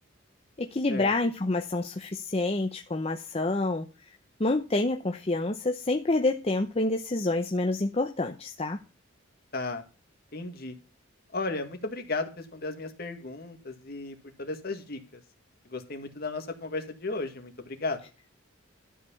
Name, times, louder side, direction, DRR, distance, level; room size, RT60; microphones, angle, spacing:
voice 1, 0.6-3.9 4.4-8.8, left 2 dB, 30° left, 0.7 m, -28 dB
voice 2, 9.5-9.8 10.3-10.8 11.3-15.2 15.7-18.0, left 3 dB, 50° left, 2.0 m, -35 dB
13.0 x 4.9 x 7.1 m
head